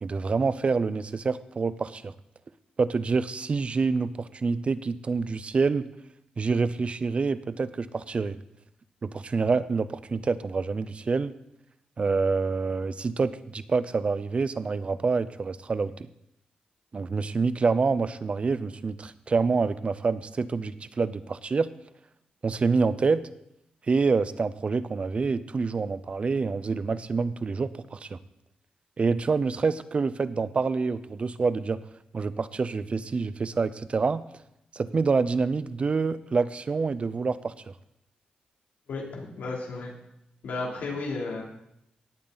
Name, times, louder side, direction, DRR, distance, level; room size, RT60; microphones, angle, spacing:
voice 1, 0.0-2.1 2.8-5.9 6.4-8.4 9.0-11.3 12.0-15.9 16.9-21.7 22.4-23.2 23.9-28.2 29.0-31.8 32.1-34.2 34.7-37.5, right 4 dB, 45° right, 15 dB, 0.7 m, -27 dB
voice 2, 38.9-39.9 40.4-41.4, left 3 dB, 85° left, -1 dB, 3.3 m, -33 dB
18.0 x 8.7 x 4.1 m, 0.80 s
cardioid pair, 70°, 3 cm